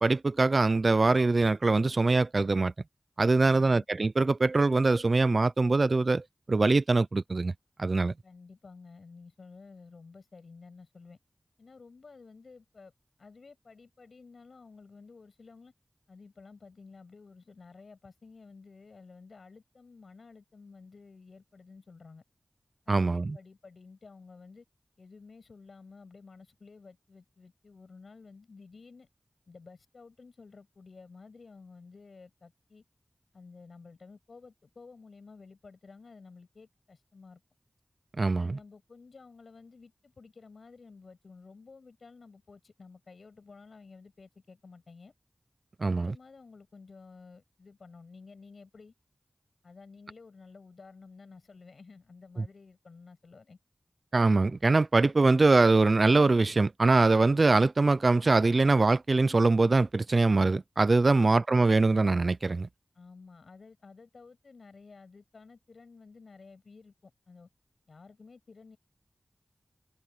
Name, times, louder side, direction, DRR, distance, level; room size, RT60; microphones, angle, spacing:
voice 1, 0.0-2.7 3.2-7.5 7.8-8.1 22.9-23.4 38.2-38.6 45.8-46.1 54.1-62.7, right 3 dB, 60° right, 0.5 m, -23 dB
voice 2, 8.2-11.2 11.6-12.9 13.2-15.7 16.1-22.2 22.9-24.6 25.0-29.1 29.5-32.8 33.3-37.4 38.3-45.1 45.8-48.9 49.6-53.6 62.9-67.5 67.9-68.8, left 4 dB, 80° left, 8.0 m, -52 dB
wide cardioid pair, 50°, 0 cm